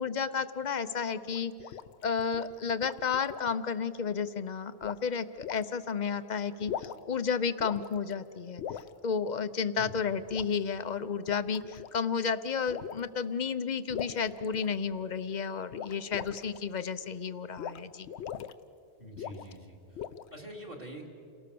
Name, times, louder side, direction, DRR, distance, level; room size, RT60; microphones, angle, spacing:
voice 1, 0.0-18.1, left 6 dB, 45° left, 12 dB, 0.8 m, -32 dB
sound 1, 1.3-3.6 4.8-5.0 5.4-5.6 6.5-7.2 7.6-8.1 8.6-8.9 10.3-10.5 11.1-12.0 12.7-13.1 13.9-15.0 15.7-16.6 17.6-17.8 18.0-18.5 19.2-19.6 19.9-20.4, left 9 dB, 75° left, 1.0 m, -40 dB
voice 2, 19.0-19.8 20.3-21.1, right 1 dB, 40° right, 2 dB, 2.7 m, -44 dB
28.5 x 18.5 x 6.9 m, 2.6 s
omnidirectional pair, 1.1 m